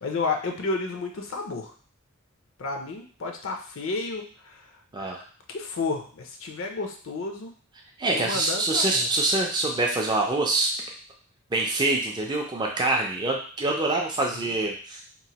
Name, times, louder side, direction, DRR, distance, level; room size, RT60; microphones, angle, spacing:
voice 1, 0.0-1.7 2.6-4.6 5.5-7.5 8.1-9.1 14.4-14.5, left 3 dB, 60° left, 3 dB, 0.5 m, -31 dB
voice 2, 8.0-10.7 11.5-15.0, right 2 dB, 20° right, 0 dB, 0.4 m, -25 dB
3.0 x 2.1 x 2.8 m, 0.42 s
head